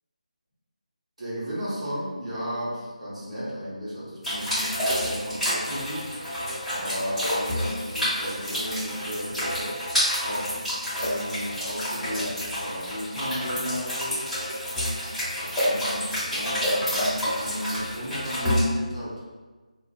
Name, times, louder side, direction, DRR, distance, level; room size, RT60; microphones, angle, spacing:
voice 1, 1.2-6.1 6.7-9.8 10.2-10.6 10.9-14.5 15.4-19.2, equal, 60° right, -8 dB, 1.1 m, -34 dB
sound 1, 4.2-18.6, equal, ahead, 1.1 m, -29 dB
2.5 x 2.4 x 2.4 m, 1.3 s
figure-of-eight pair, 160°, 4 cm